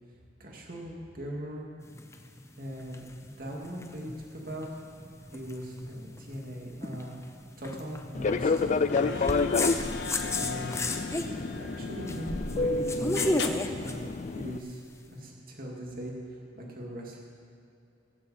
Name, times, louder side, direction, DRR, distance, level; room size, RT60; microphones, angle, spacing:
voice 1, 0.4-1.7 2.6-8.7 9.1-9.4 9.8-10.8 11.5-13.5 13.8-14.8 15.1-16.1 16.6-17.2, equal, 50° right, -2 dB, 2.5 m, -40 dB
sound 1, 1.8-15.0, left 2 dB, 15° left, 0.7 m, -35 dB
Fixed-wing aircraft airplane, 8.1-14.6, left 3 dB, 40° left, 0.4 m, -30 dB
sound 2, 8.3-12.7 13.2-13.5, left 5 dB, 70° left, 0.8 m, -39 dB
16.0 x 15.0 x 4.4 m, 2.6 s
head